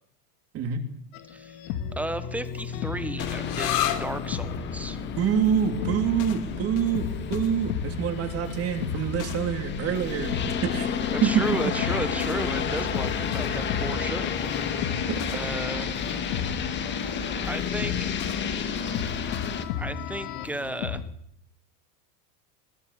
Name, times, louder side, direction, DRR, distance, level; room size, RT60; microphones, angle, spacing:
sound 1, 1.1-21.0, left 8 dB, 55° left, 2.3 m, -36 dB
voice 1, 1.3-1.6 1.9-5.0 11.1-14.4 15.3-15.9 17.5-18.2 19.8-21.0, right 1 dB, 5° right, 11 dB, 1.0 m, -34 dB
sound 2, 3.2-19.6, left 7 dB, 25° left, 2.1 m, -31 dB
sound 3, 3.4-10.8, left 11 dB, 90° left, 4.1 m, -36 dB
voice 2, 5.2-10.4 10.6-10.9 11.2-11.4 15.1-15.2, right 8 dB, 30° right, 6 dB, 3.3 m, -26 dB
21.5 x 21.5 x 8.7 m, 0.72 s
supercardioid pair, 165°, 47 cm